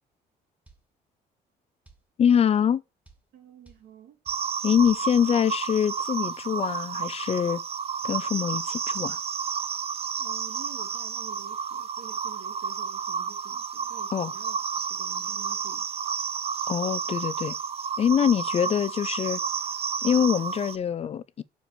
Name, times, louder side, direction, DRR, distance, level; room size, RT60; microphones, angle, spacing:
sound 1, 0.7-0.9 1.9-2.1 3.1-3.3 3.7-3.9 4.3-4.5 4.9-5.1, right 3 dB, 10° right, 1.7 m, -54 dB
voice 1, 2.2-2.8 4.6-7.6 8.0-9.2 14.1-14.3 16.7-17.5 18.0-19.4 20.0-21.4, left 8 dB, 35° left, 0.5 m, -24 dB
voice 2, 3.3-4.2 10.1-16.1, right 9 dB, 75° right, 2.5 m, -49 dB
sound 2, 4.3-20.8, right 6 dB, 35° right, 0.6 m, -31 dB
6.5 x 5.0 x 6.0 m
cardioid pair, 110°, 17 cm